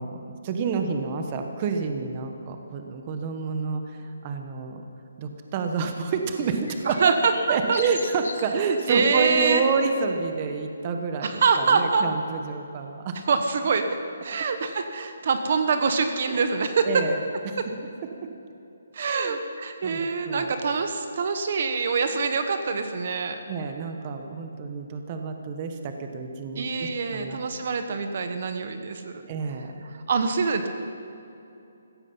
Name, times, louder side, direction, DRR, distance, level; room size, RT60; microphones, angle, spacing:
voice 1, 0.0-4.8 5.2-7.2 7.5-13.2 16.3-16.4 16.8-17.6 19.0-19.4 19.8-20.5 23.5-27.4 29.3-29.8, right 5 dB, 30° right, 5 dB, 1.2 m, -29 dB
sound 1, 6.5-9.0 9.4-9.6, left 4 dB, 80° left, 2.0 m, -40 dB
voice 2, 6.8-7.8 8.9-9.6 11.2-12.1 13.3-13.8 14.2-17.0 18.9-23.4 26.6-29.1 29.9-30.7, right 5 dB, 50° right, 7 dB, 1.1 m, -25 dB
16.0 x 14.5 x 5.6 m, 2.8 s
hypercardioid pair, 165°, 0 cm